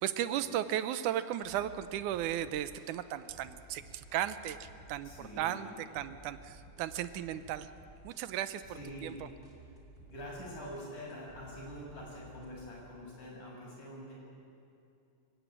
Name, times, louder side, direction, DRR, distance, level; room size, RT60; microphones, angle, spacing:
voice 1, 0.0-5.1 5.4-7.7 8.0-9.3, right 11 dB, 90° right, 12 dB, 2.3 m, -35 dB
sound 1, 1.4-12.8, right 1 dB, 15° right, 3.5 m, -55 dB
voice 2, 5.0-6.1 8.7-9.1 10.1-14.1, equal, 80° left, -3 dB, 8.2 m, -46 dB
26.5 x 15.5 x 9.3 m, 2.6 s
omnidirectional pair, 3.5 m